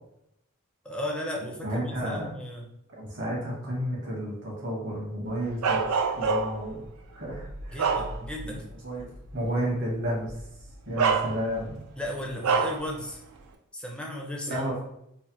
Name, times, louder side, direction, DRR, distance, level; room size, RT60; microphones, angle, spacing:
voice 1, 0.8-2.6 7.7-8.7 12.0-13.2 13.7-14.6, left 1 dB, 5° left, -1 dB, 0.4 m, -35 dB
voice 2, 1.6-2.3 2.9-6.8 7.1-7.9 8.5-9.1 9.3-10.3 10.9-11.8 14.5-14.7, equal, 55° right, -4 dB, 1.2 m, -32 dB
Bark, 5.6-6.7 7.3-8.5 9.0-9.1 10.3-10.4 11.0-11.7 12.4-12.9, right 5 dB, 80° right, 0.4 m, -26 dB
3.2 x 2.1 x 2.8 m, 0.78 s
head